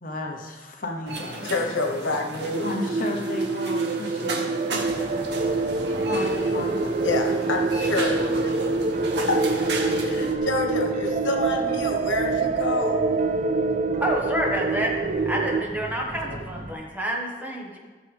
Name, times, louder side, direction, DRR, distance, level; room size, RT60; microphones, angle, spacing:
voice 1, 0.0-1.6 2.6-4.5 6.1-6.9, left 2 dB, 45° left, 1 dB, 0.9 m, -33 dB
sound 1, 1.1-10.4, right 2 dB, 60° right, 1.1 m, -34 dB
voice 2, 1.4-2.7 5.4-5.6 7.0-8.8 9.3-9.4 9.7-13.0 16.3-16.4, left 3 dB, 80° left, 2 dB, 1.3 m, -28 dB
sound 2, 2.5-15.6, right 3 dB, 40° right, 0.4 m, -25 dB
Fixed-wing aircraft airplane, 4.7-16.7, equal, 85° right, 2.4 m, -39 dB
voice 3, 14.0-14.9 15.2-17.8, right 1 dB, 10° right, -2 dB, 1.4 m, -28 dB
14.5 x 7.0 x 3.5 m, 1.4 s
head